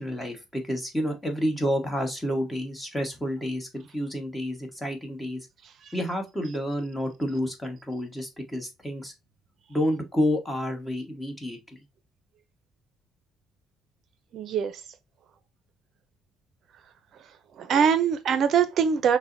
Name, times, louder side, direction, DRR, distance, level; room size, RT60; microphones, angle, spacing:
voice 1, 0.0-5.5 5.9-9.1 9.7-11.8, equal, 10° left, 1.2 m, -29 dB
voice 2, 14.3-14.8 17.1-19.2, right 7 dB, 60° right, 0.5 m, -24 dB
5.9 x 2.1 x 2.5 m
cardioid pair, 105°, 0 cm